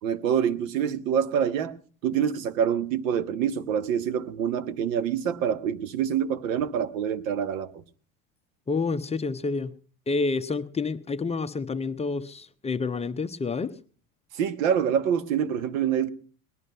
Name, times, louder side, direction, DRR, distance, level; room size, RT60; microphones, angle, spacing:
voice 1, 0.0-1.8 2.0-7.8 14.3-16.1, right 8 dB, 80° right, 1.4 m, -26 dB
voice 2, 8.7-9.7 10.1-13.7, left 4 dB, 15° left, 0.8 m, -28 dB
20.0 x 11.0 x 5.5 m
supercardioid pair, 115°, 39 cm